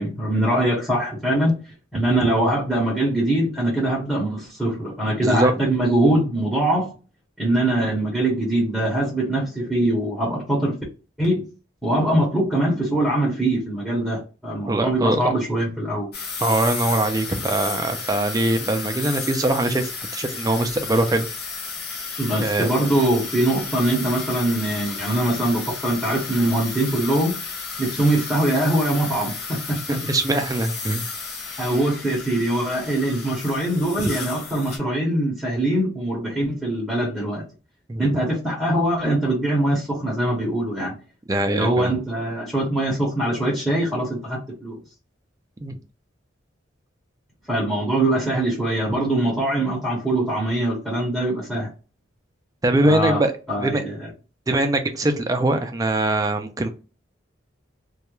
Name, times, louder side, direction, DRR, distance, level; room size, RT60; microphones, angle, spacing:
voice 1, 0.0-1.6 1.9-6.9 7.4-10.8 11.2-11.4 11.8-16.1 22.2-27.4 27.8-30.0 31.6-37.4 38.0-40.9 41.4-44.8 47.5-51.7 52.8-53.2 53.5-54.1, right 1 dB, ahead, -4 dB, 0.7 m, -22 dB
voice 2, 14.7-15.2 16.4-21.3 22.4-22.7 29.9-31.0 37.9-38.1 41.3-41.9 45.6-45.8 52.6-53.3 53.6-53.8 54.5-56.7, right 2 dB, 20° right, 6 dB, 0.3 m, -22 dB
sound 1, 16.1-34.8, left 4 dB, 50° left, 0.7 m, -33 dB
2.3 x 2.1 x 2.9 m, 0.34 s
head